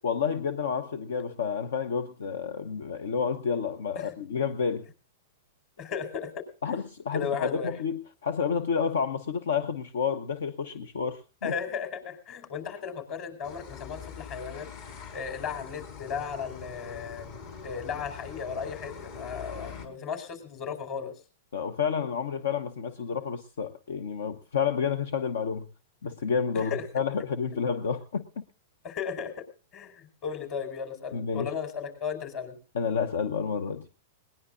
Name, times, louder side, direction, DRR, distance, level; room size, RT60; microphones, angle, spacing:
voice 1, 0.0-4.9 6.6-11.5 21.5-25.6 26.0-28.4 31.1-31.5 32.7-33.8, left 6 dB, 80° left, 11 dB, 1.0 m, -30 dB
voice 2, 5.8-6.3 7.1-7.7 11.4-14.7 15.1-17.3 17.6-21.1 26.5-26.8 28.8-29.4 29.7-32.5, left 6 dB, 45° left, 6 dB, 5.0 m, -35 dB
sound 1, 13.4-19.9, left 6 dB, 60° left, 4.3 m, -43 dB
20.5 x 19.5 x 2.6 m, 0.37 s
hypercardioid pair, 115°, 0 cm